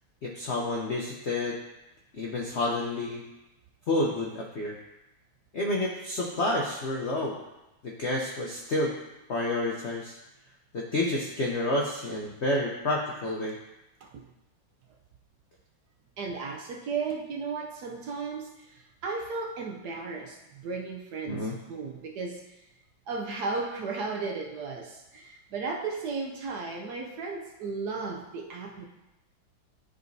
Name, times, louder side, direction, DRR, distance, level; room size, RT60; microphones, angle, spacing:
voice 1, 0.2-1.6 2.1-3.2 3.9-4.7 5.5-7.4 7.8-8.9 9.3-10.2 10.7-13.6 21.3-21.5, left 2 dB, 65° left, -2 dB, 0.6 m, -29 dB
voice 2, 16.2-22.4 23.1-28.9, right 4 dB, 70° right, 1 dB, 1.0 m, -35 dB
11.0 x 3.9 x 2.6 m, 0.96 s
omnidirectional pair, 2.1 m